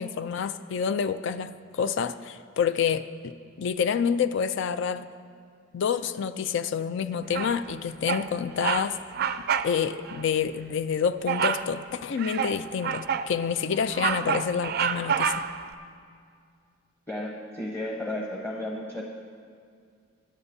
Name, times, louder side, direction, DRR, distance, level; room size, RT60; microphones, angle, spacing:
voice 1, 0.0-5.1 5.7-9.0 9.6-15.3, left 7 dB, 60° left, 11 dB, 0.3 m, -28 dB
Bird vocalization bird call bird song, 7.3-7.7 8.1-8.3 8.6-8.9 9.1-9.7 10.1-10.2 11.3-11.7 12.2-13.3 13.7-15.7, right 7 dB, 50° right, 0.4 m, -28 dB
voice 2, 17.1-19.0, left 1 dB, 10° left, -1 dB, 0.8 m, -33 dB
22.5 x 8.8 x 2.7 m, 2.2 s
head